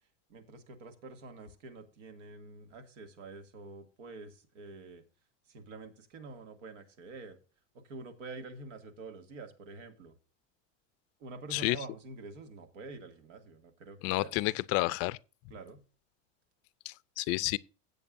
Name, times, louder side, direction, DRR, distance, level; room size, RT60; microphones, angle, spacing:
voice 1, 0.3-5.0 5.5-7.4 7.7-10.1 11.2-14.4 15.5-15.8, right 3 dB, 90° right, 2.3 m, -47 dB
voice 2, 14.0-15.2 16.9-17.6, left 21 dB, 40° left, 0.4 m, -30 dB
16.5 x 8.0 x 2.6 m
supercardioid pair, 140°, 36 cm